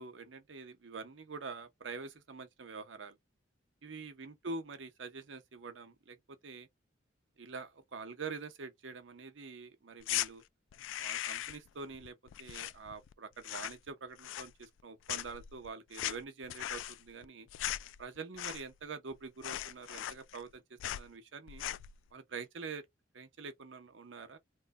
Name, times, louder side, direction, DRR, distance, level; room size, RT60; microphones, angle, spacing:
voice 1, 0.0-3.2 3.8-6.7 7.4-10.4 11.0-17.5 18.0-21.6 22.1-22.9 23.1-24.4, right 4 dB, 75° right, 0.7 m, -46 dB
sound 1, 10.0-10.3 10.7-11.7 11.9-13.1 13.4-13.9 14.2-14.8 15.1-18.8 19.1-19.2 19.4-20.5 20.8-21.1 21.5-21.9, left 13 dB, 85° left, 0.3 m, -39 dB
3.1 x 2.2 x 3.5 m
head